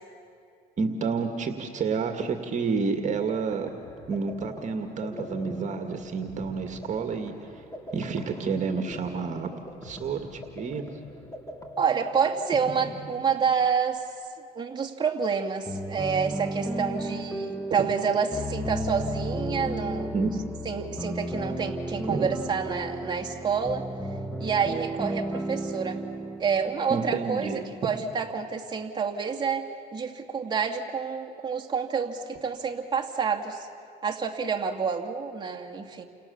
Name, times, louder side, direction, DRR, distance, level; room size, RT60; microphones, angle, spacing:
voice 1, 0.8-3.7 4.1-7.6 7.9-9.5 9.8-10.8 20.1-20.3 22.1-22.3 26.9-27.6, right 5 dB, 45° right, 5 dB, 2.2 m, -29 dB
sound 1, 2.9-13.8, equal, 20° left, 2.9 m, -43 dB
voice 2, 11.8-14.0 14.5-20.1 20.6-23.9 24.4-26.0 26.4-33.7 34.0-36.1, right 6 dB, 25° right, 0 dB, 2.4 m, -28 dB
sound 2, 15.7-27.4, right 1 dB, ahead, 1.6 m, -33 dB
30.0 x 27.0 x 7.1 m, 2.5 s
cardioid pair, 110°, 17 cm